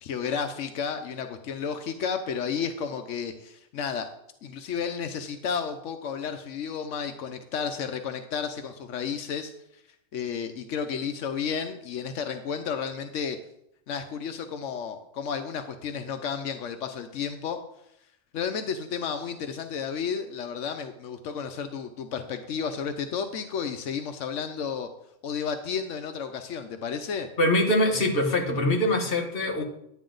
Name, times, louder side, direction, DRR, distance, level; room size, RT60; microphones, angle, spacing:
voice 1, 0.0-4.1 4.4-9.8 10.1-13.4 13.9-17.6 18.3-24.9 25.2-27.3, left 6 dB, 85° left, 7 dB, 1.1 m, -32 dB
voice 2, 27.4-29.6, left 1 dB, 50° left, 2 dB, 1.6 m, -23 dB
9.9 x 9.5 x 3.9 m, 0.77 s
omnidirectional pair, 1.2 m